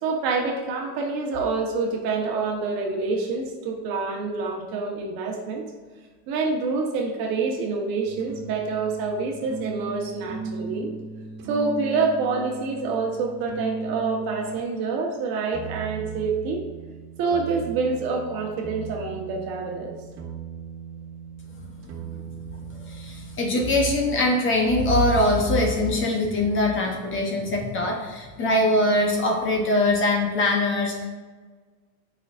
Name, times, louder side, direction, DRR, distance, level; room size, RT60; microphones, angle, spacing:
voice 1, 0.0-5.6 6.3-10.9 11.5-16.6 17.2-19.9, right 4 dB, 45° right, 1 dB, 1.3 m, -27 dB
sound 1, 8.0-14.7 15.5-23.6, right 4 dB, 65° right, 1.5 m, -37 dB
voice 2, 22.9-31.1, left 1 dB, 25° left, 1 dB, 0.9 m, -22 dB
8.4 x 5.8 x 2.5 m, 1.4 s
supercardioid pair, 140°, 48 cm